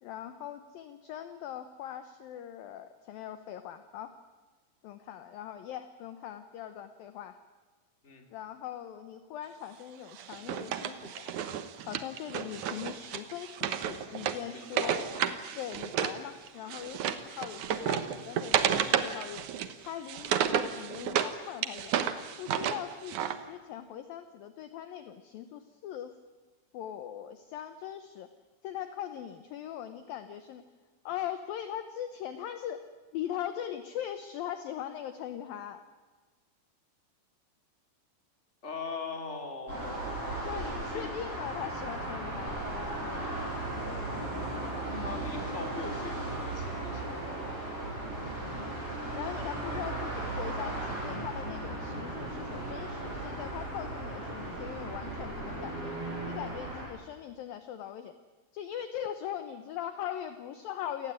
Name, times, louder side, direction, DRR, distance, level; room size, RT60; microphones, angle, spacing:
voice 1, 0.0-4.2 4.8-7.4 8.3-11.3 11.9-15.0 15.6-19.5 19.8-21.9 22.4-26.2 26.7-28.3 28.6-30.7 31.0-32.9 33.1-35.8 40.4-42.7 48.5-48.8 49.2-55.9 56.2-58.1 58.5-61.1, left 10 dB, 75° left, 10 dB, 2.2 m, -40 dB
Wood, 10.2-16.2 16.5-21.3 21.6-23.4, right 9 dB, 75° right, 1.8 m, -32 dB
voice 2, 14.5-15.3 38.6-40.1 40.9-41.1 45.0-47.5 49.7-50.0, left 4 dB, 15° left, 4 dB, 2.9 m, -41 dB
sound 1, 39.7-56.9, right 2 dB, 30° right, 8.6 m, -36 dB
28.5 x 18.5 x 9.5 m, 1.3 s
omnidirectional pair, 5.4 m